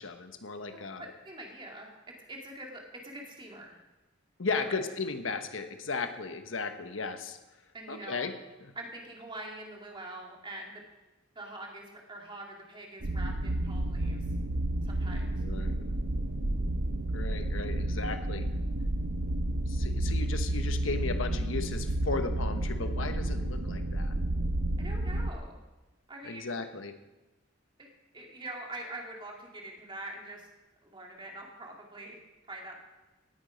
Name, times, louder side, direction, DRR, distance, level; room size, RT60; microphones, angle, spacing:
voice 1, 0.0-1.1 4.4-7.4 7.9-8.3 8.6-8.7 15.4-15.8 17.1-18.5 19.7-24.1 26.2-26.9, left 4 dB, 90° left, 7 dB, 1.2 m, -35 dB
voice 2, 1.2-1.9 2.3-3.8 4.6-4.9 7.7-8.3 8.8-10.7 11.3-14.2 14.8-15.4 24.8-25.6 26.1-26.5 27.8-27.9 28.1-30.5 30.8-32.2 32.5-32.8, right 1 dB, 25° right, 0 dB, 2.6 m, -44 dB
sound 1, 13.0-25.3, right 1 dB, 70° right, 0.8 m, -31 dB
18.0 x 9.2 x 5.2 m, 1.1 s
head